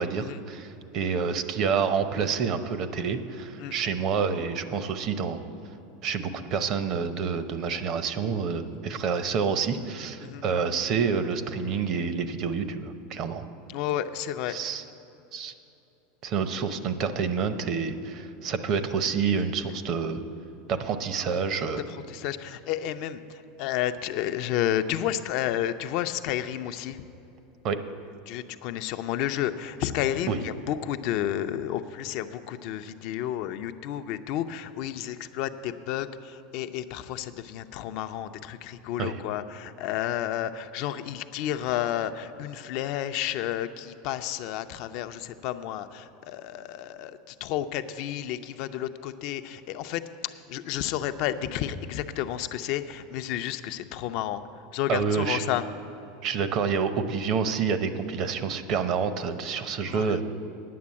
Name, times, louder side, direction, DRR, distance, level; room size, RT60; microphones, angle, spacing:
voice 1, 0.0-5.4 6.0-13.5 14.5-14.8 15.3-15.5 16.2-20.2 20.7-21.8 27.6-27.8 30.3-30.4 39.0-39.2 54.9-55.4 56.2-60.2, right 6 dB, 45° right, 10 dB, 0.7 m, -28 dB
voice 2, 13.7-14.5 21.9-27.0 28.3-55.6 59.8-60.2, left 11 dB, 55° left, 10 dB, 0.5 m, -31 dB
9.4 x 6.8 x 8.5 m, 2.9 s
supercardioid pair, 135°, 0 cm